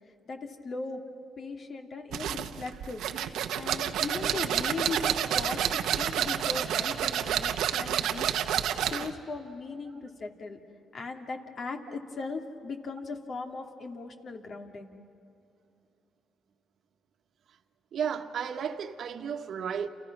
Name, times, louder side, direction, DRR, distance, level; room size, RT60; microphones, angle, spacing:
voice 1, 0.6-1.0 1.4-3.0 3.5-8.3 8.9-10.6 10.9-14.9, left 4 dB, 50° left, 2.6 m, -38 dB
sound 1, 2.1-9.1, right 10 dB, 80° right, 1.1 m, -29 dB
voice 2, 17.9-19.9, right 7 dB, 65° right, 1.4 m, -33 dB
29.5 x 28.5 x 6.1 m
cardioid pair, 90°, 0 cm